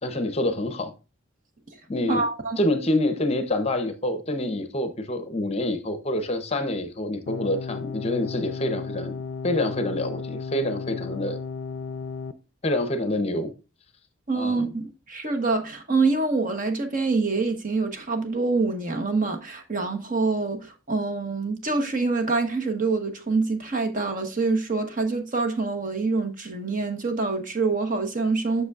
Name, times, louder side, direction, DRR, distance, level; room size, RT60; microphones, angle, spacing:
voice 1, 0.0-0.9 1.9-2.3 2.6-9.1 9.4-11.4 12.6-13.5 14.3-14.7, left 1 dB, 30° left, 0.7 m, -26 dB
voice 2, 2.1-2.6 14.3-28.7, right 3 dB, 40° right, 1.0 m, -26 dB
sound 1, 7.3-12.3, left 5 dB, 60° left, 0.5 m, -34 dB
7.9 x 6.4 x 2.4 m
head